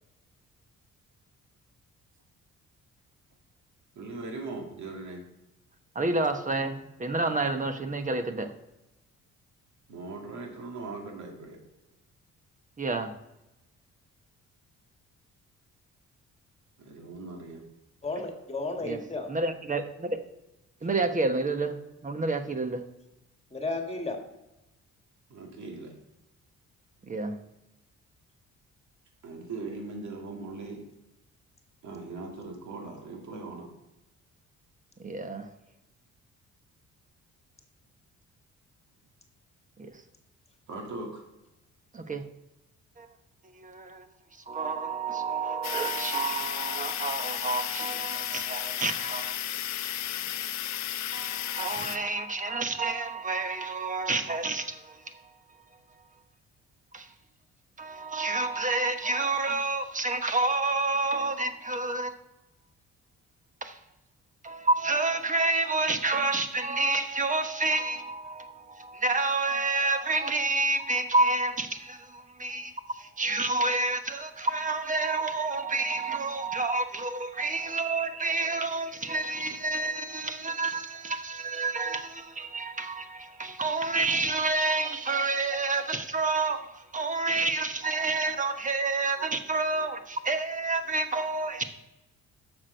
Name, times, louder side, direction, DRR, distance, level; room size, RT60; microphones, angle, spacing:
voice 1, 4.0-5.2 9.9-11.6 16.8-17.6 25.3-25.9 29.2-30.8 31.8-33.7 40.7-41.2, right 3 dB, 70° right, 2.2 m, -39 dB
voice 2, 5.9-8.5 12.8-13.1 18.8-19.0 19.3-20.2 20.8-22.8 27.0-27.4 35.0-35.5 39.8-40.0 41.9-42.3 43.0-43.1 43.5-44.1 44.5-49.4 51.1-55.3 56.9-57.1 57.8-62.1 63.6-63.8 64.4-91.6, right 3 dB, 25° right, 1.0 m, -29 dB
voice 3, 18.0-19.3 23.5-24.2 51.7-51.9, left 2 dB, 20° left, 1.7 m, -33 dB
sound 1, 45.6-52.0, left 11 dB, 65° left, 0.6 m, -33 dB
7.3 x 6.4 x 6.4 m
cardioid pair, 90°, 30 cm